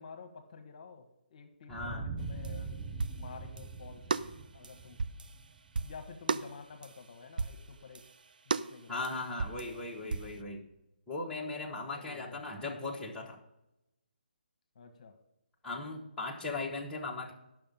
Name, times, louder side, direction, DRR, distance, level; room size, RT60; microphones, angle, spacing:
voice 1, 0.0-2.8 3.2-4.3 4.5-5.0 5.8-8.0 8.5-9.0 11.8-12.4 14.7-15.2, left 5 dB, 45° left, 6 dB, 1.2 m, -50 dB
voice 2, 1.7-2.0 8.9-10.6 11.1-13.4 15.6-17.3, left 3 dB, 10° left, -4 dB, 1.1 m, -38 dB
sound 1, 1.7-6.3, right 4 dB, 10° right, 0.7 m, -42 dB
sound 2, 2.2-3.8 4.1-7.1 7.4-10.4, right 4 dB, 60° right, 0.5 m, -36 dB
11.5 x 6.2 x 5.3 m, 0.90 s
figure-of-eight pair, 145°, 5 cm